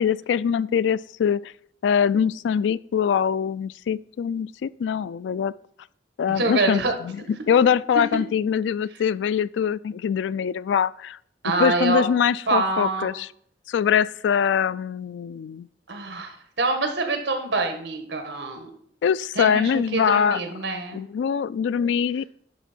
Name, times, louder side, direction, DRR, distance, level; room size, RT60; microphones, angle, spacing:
voice 1, 0.0-1.5 1.8-5.5 6.2-7.2 7.5-11.2 11.4-13.3 13.7-15.7 19.0-20.4 20.9-22.2, left 7 dB, 80° left, 19 dB, 0.3 m, -23 dB
voice 2, 6.3-6.9 11.4-12.0 12.5-13.1 15.9-18.7 19.3-21.0, right 3 dB, 75° right, 5 dB, 1.5 m, -26 dB
10.5 x 3.6 x 5.9 m, 0.64 s
head